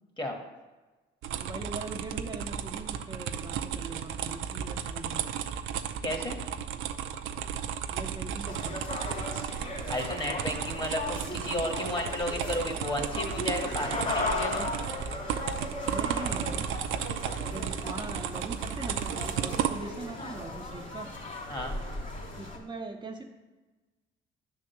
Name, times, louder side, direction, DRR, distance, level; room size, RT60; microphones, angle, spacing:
sound 1, 1.2-20.0, right 8 dB, 85° right, 0.6 m, -34 dB
voice 1, 1.3-5.3 7.9-8.8 15.9-16.7 17.5-21.1 22.4-23.2, right 3 dB, 20° right, 1 dB, 0.9 m, -41 dB
voice 2, 6.0-6.4 9.9-14.6 21.5-21.8, left 1 dB, 25° left, 3 dB, 1.6 m, -33 dB
sound 2, 8.5-22.6, left 2 dB, 40° left, 2.5 m, -37 dB
9.8 x 3.8 x 7.1 m, 1.2 s
cardioid pair, 90°, 20 cm